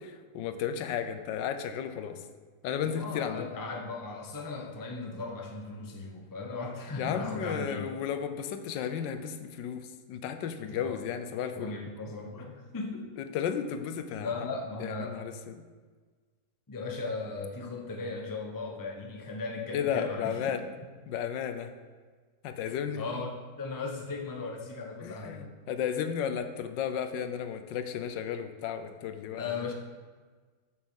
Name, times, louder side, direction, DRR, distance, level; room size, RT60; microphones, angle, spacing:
voice 1, 0.0-2.2 2.6-3.5 7.0-11.7 13.3-14.3 14.8-15.6 19.7-20.6 21.1-21.7 22.4-23.0 25.0-29.6, left 8 dB, 85° left, 9 dB, 1.4 m, -33 dB
voice 2, 2.8-8.0 10.7-11.0 11.5-13.2 14.2-15.2 16.7-20.4 22.6-23.3 23.6-25.4 29.3-29.7, left 3 dB, 20° left, 2 dB, 0.6 m, -37 dB
7.2 x 6.3 x 6.3 m, 1.5 s
omnidirectional pair, 1.9 m